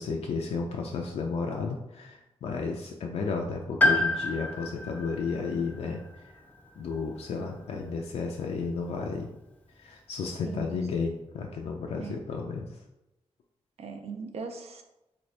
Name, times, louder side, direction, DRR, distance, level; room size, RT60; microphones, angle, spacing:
voice 1, 0.0-6.0 6.8-9.3 9.8-12.7, left 4 dB, 75° left, 1 dB, 0.4 m, -32 dB
Piano, 3.8-7.7 7.9-8.0 9.2-9.3, left 2 dB, 15° left, 0.4 m, -30 dB
voice 2, 10.4-10.8 12.0-12.2 13.8-14.8, right 5 dB, 70° right, 5 dB, 0.5 m, -39 dB
3.4 x 2.6 x 3.2 m, 0.93 s
wide cardioid pair, 130°, 11 cm